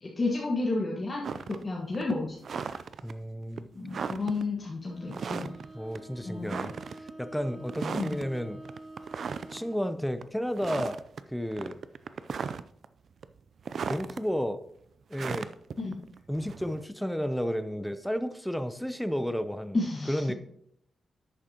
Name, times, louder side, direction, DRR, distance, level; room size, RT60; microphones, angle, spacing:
voice 1, 0.0-2.7 3.7-5.5 6.2-6.6 7.9-8.1 15.8-16.0 19.7-20.2, left 3 dB, 30° left, -3 dB, 1.5 m, -32 dB
sound 1, 1.2-1.6 1.9-3.1 3.6-3.7 3.9-4.4 5.1-5.7 6.0-6.1 6.5-7.1 7.7-8.3 8.7-9.6 10.1-10.2 10.6-11.2 11.5-12.9 13.2-14.2 15.1-16.9, right 6 dB, 55° right, 0.4 m, -36 dB
voice 2, 3.0-3.7 5.7-8.7 9.5-11.8 13.9-14.6 15.1-15.5 16.3-19.8 20.1-20.3, equal, ahead, 10 dB, 0.6 m, -32 dB
Bowed string instrument, 4.8-9.8, right 1 dB, 15° right, 4.3 m, -47 dB
11.0 x 8.5 x 2.9 m, 0.74 s
wide cardioid pair, 140°, 0 cm